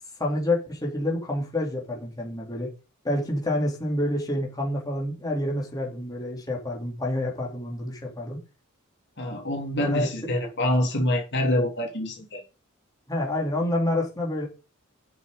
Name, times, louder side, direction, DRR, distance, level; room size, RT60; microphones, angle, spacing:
voice 1, 0.2-2.7 3.0-8.4 9.8-10.1 13.1-14.5, left 1 dB, 20° left, 3.5 m, -28 dB
voice 2, 9.2-12.4, left 1 dB, 55° left, 3.2 m, -26 dB
8.7 x 7.2 x 5.2 m
head